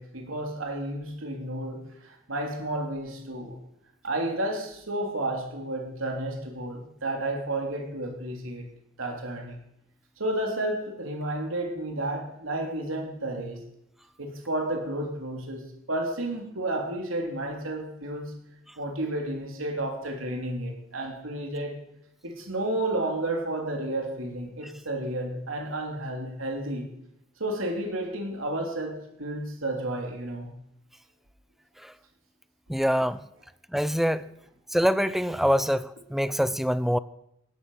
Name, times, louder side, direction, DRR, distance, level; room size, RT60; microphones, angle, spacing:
voice 1, 0.0-3.6 4.0-8.7 9.0-9.6 10.2-13.6 14.2-18.4 18.8-21.8 22.2-26.9 27.4-30.5, right 1 dB, 75° right, 2 dB, 3.5 m, -31 dB
voice 2, 32.7-33.3 33.7-34.3 34.7-37.0, equal, ahead, 16 dB, 0.5 m, -25 dB
16.5 x 12.5 x 5.7 m, 0.78 s
head